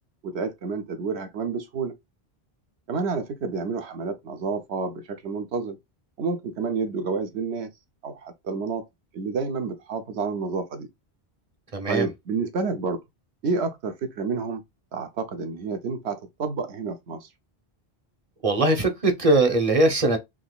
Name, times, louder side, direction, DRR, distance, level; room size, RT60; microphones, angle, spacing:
voice 1, 0.2-1.9 2.9-5.8 6.2-7.7 8.0-8.8 9.1-10.9 11.9-13.0 13.4-14.6 14.9-17.3, right 4 dB, 85° right, 1.0 m, -29 dB
voice 2, 11.7-12.1 18.4-20.2, right 2 dB, 35° right, 0.9 m, -21 dB
3.8 x 2.9 x 2.3 m
omnidirectional pair, 1.1 m